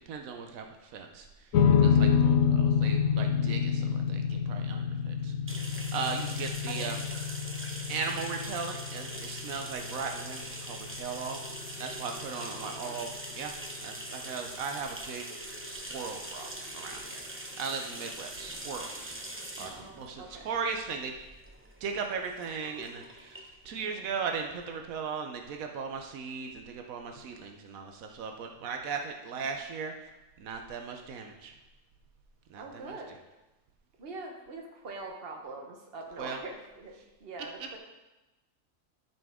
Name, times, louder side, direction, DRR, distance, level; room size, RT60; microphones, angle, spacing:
voice 1, 0.1-0.7 0.9-1.3 1.8-5.3 5.9-7.0 7.9-13.1 13.3-13.5 13.8-15.2 15.7-19.1 19.6-21.1 21.8-23.4 23.6-29.9 30.4-31.5 32.5-32.9 36.2-36.4, right 5 dB, 85° right, 4 dB, 1.2 m, -37 dB
sound 1, 1.5-14.1, left 7 dB, 85° left, 1.1 m, -29 dB
sound 2, 5.5-24.9, right 1 dB, 10° right, 0.6 m, -43 dB
voice 2, 5.6-5.9 6.7-7.0 12.6-13.0 19.6-20.5 23.8-24.1 29.3-29.5 32.6-33.2 34.0-36.9 37.2-37.8, right 3 dB, 45° right, 2 dB, 1.3 m, -44 dB
12.0 x 5.4 x 3.6 m, 1.0 s
omnidirectional pair, 1.4 m